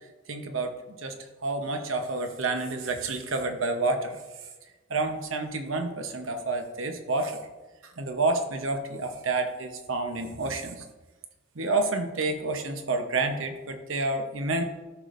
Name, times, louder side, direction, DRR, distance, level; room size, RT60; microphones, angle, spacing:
voice 1, 0.3-1.2 1.4-4.2 4.9-7.4 8.0-10.8 11.6-14.6, right 3 dB, 80° right, 6 dB, 0.9 m, -29 dB
13.0 x 5.0 x 2.6 m, 1.2 s
head